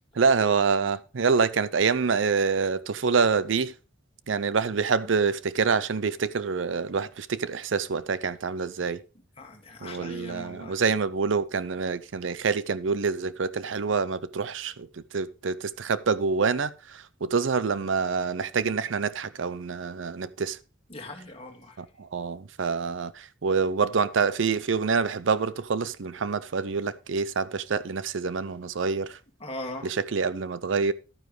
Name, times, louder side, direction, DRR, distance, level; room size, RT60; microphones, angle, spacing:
voice 1, 0.1-3.7 4.3-9.0 9.8-20.6 21.8-29.2 29.8-30.9, right 5 dB, 75° right, 0.6 m, -26 dB
voice 2, 9.4-10.8 20.9-21.8 29.4-29.9, left 1 dB, 30° left, 2.1 m, -39 dB
11.5 x 9.3 x 3.3 m
head